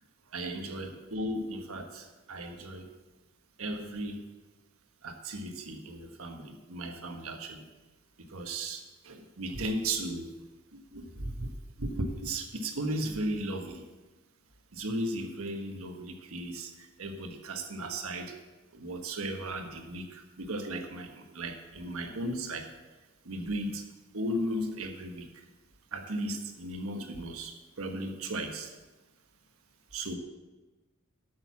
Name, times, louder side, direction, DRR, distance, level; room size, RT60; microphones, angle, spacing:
voice 1, 0.3-2.9 3.6-4.2 5.0-7.7 8.3-10.3 10.7-11.5 11.8-13.9 14.7-18.4 18.7-22.7 23.2-23.9 24.1-25.4 25.9-28.7 29.9-30.1, right 1 dB, 75° right, 4 dB, 1.3 m, -36 dB
8.8 x 6.4 x 7.3 m, 1.2 s
head